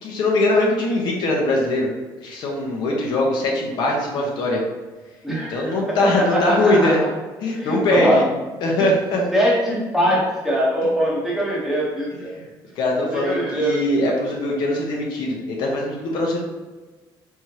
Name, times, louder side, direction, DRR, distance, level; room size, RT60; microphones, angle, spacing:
voice 1, 0.0-1.9 2.2-4.6 5.5-7.0 7.4-8.2 8.6-9.2 12.3-12.5 12.8-16.4, left 1 dB, 60° left, -1 dB, 1.0 m, -21 dB
voice 2, 5.2-7.1 7.5-8.2 9.3-12.3 13.1-13.8, equal, 5° right, -6 dB, 1.0 m, -22 dB
4.6 x 3.5 x 2.9 m, 1.3 s
cardioid pair, 175°, 8 cm